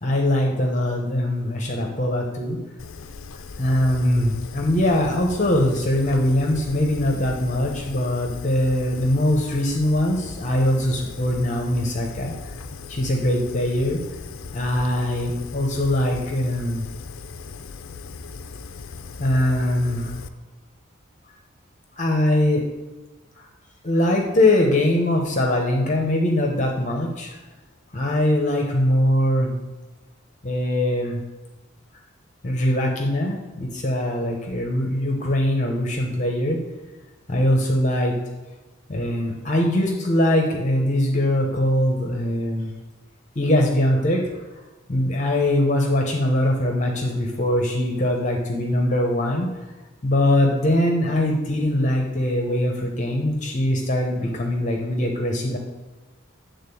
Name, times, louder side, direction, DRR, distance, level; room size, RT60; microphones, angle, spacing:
voice 1, 0.0-2.6 3.6-12.5 12.9-14.0 14.5-16.8 19.2-20.2 21.9-22.6 23.4-23.5 23.8-27.4 27.9-29.6 30.4-31.2 32.4-36.6 37.3-38.1 38.9-42.7 43.3-44.4 44.9-49.5 50.0-55.6, left 1 dB, 35° left, 1 dB, 0.9 m, -22 dB
Fire, 2.8-20.3, left 4 dB, 80° left, 0.5 m, -38 dB
8.9 x 3.8 x 6.9 m, 1.2 s
head